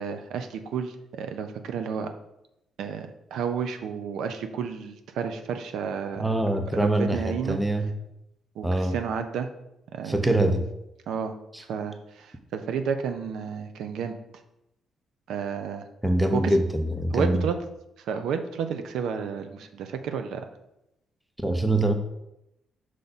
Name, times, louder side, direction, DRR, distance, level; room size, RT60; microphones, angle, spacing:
voice 1, 0.0-2.1 2.8-6.2 6.8-7.6 8.6-9.5 9.9-10.1 11.1-11.3 11.7-14.2 15.3-15.9 16.3-16.5 17.1-17.6 18.1-20.5, right 6 dB, 80° right, 8 dB, 0.5 m, -31 dB
voice 2, 6.2-7.9 8.6-9.0 10.0-10.6 11.5-11.6 16.0-17.4 21.4-21.9, right 1 dB, 5° right, 6 dB, 0.6 m, -24 dB
5.7 x 4.8 x 4.0 m, 0.86 s
cardioid pair, 90°, 0 cm